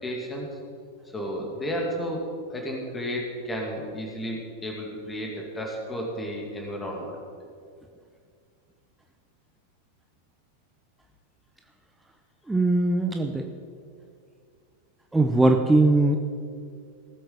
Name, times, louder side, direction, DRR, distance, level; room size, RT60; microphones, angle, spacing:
voice 1, 0.0-0.5 1.1-2.2 2.5-7.2, equal, 15° left, -1 dB, 2.4 m, -32 dB
voice 2, 12.5-13.5 15.1-16.2, right 2 dB, 5° right, 4 dB, 0.8 m, -20 dB
18.0 x 7.8 x 5.1 m, 2.2 s
figure-of-eight pair, 90°, 0 cm